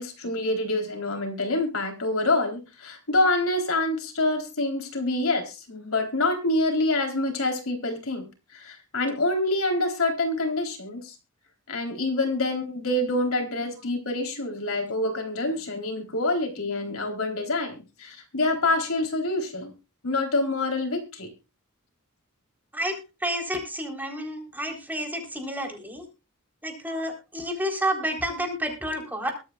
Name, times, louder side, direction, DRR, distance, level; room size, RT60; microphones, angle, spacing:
voice 1, 0.0-11.1 11.7-19.7 20.0-21.3, left 2 dB, 65° left, 4 dB, 3.9 m, -26 dB
voice 2, 23.2-26.1 26.6-29.3, equal, 10° right, 3 dB, 4.0 m, -30 dB
23.0 x 9.0 x 2.4 m, 0.29 s
head